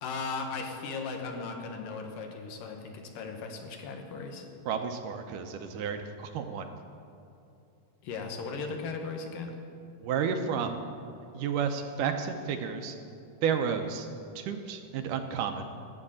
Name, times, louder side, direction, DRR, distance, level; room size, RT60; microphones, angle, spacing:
voice 1, 0.0-4.5 8.0-9.6, left 4 dB, 80° left, 3 dB, 2.7 m, -37 dB
voice 2, 4.7-6.7 10.0-10.8 11.3-13.0 13.4-14.1 14.4-15.7, right 7 dB, 80° right, 6 dB, 2.2 m, -31 dB
12.0 x 6.5 x 8.6 m, 2.7 s
omnidirectional pair, 3.9 m